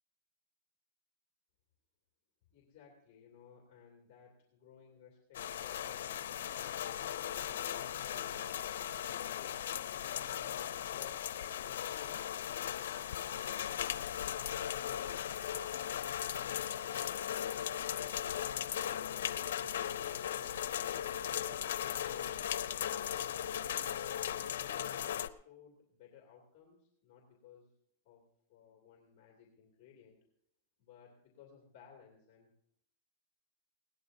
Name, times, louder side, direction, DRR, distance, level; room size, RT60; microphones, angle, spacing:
voice 1, 2.5-6.2 7.0-9.7 10.3-14.0 14.4-15.7 17.8-18.5 18.8-21.5 22.0-24.2 24.6-27.7 28.0-30.2 30.8-32.5, left 7 dB, 35° left, 0 dB, 2.4 m, -58 dB
sound 1, 5.3-25.3, left 10 dB, 90° left, 0.6 m, -37 dB
20.5 x 17.5 x 2.7 m, 0.69 s
supercardioid pair, 175°, 0 cm